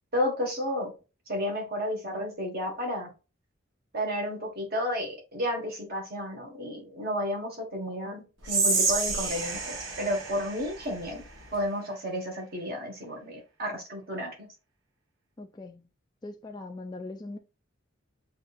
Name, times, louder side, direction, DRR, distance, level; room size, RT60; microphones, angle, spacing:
voice 1, 0.1-0.9 1.3-3.1 3.9-11.2 11.5-14.5, equal, 50° right, 1.7 m, -32 dB
Whispering, 8.4-11.6, right 4 dB, 80° right, 1.3 m, -29 dB
voice 2, 15.4-15.9 16.2-17.4, left 2 dB, 20° left, 0.3 m, -40 dB
6.3 x 2.8 x 2.5 m
head